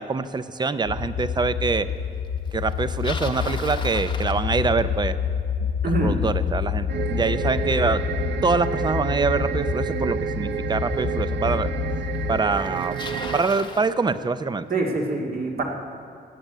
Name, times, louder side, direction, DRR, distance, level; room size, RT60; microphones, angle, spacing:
voice 1, 0.0-1.9 2.5-5.2 5.8-8.0 8.4-11.7 12.3-13.1 13.3-14.7, right 4 dB, 25° right, 13 dB, 0.5 m, -25 dB
sound 1, 0.9-12.4, left 8 dB, 80° left, 0.8 m, -28 dB
Bicycle, 2.7-5.0 10.1-10.2 11.0-11.1 12.1-12.2 12.4-13.9, left 3 dB, 25° left, 0.9 m, -36 dB
voice 2, 5.8-6.1 14.7-15.6, right 2 dB, 60° right, 0 dB, 2.2 m, -25 dB
sound 2, 6.9-13.4, right 8 dB, 75° right, 0.6 m, -30 dB
16.5 x 9.0 x 8.1 m, 2.3 s
wide cardioid pair, 160°, 18 cm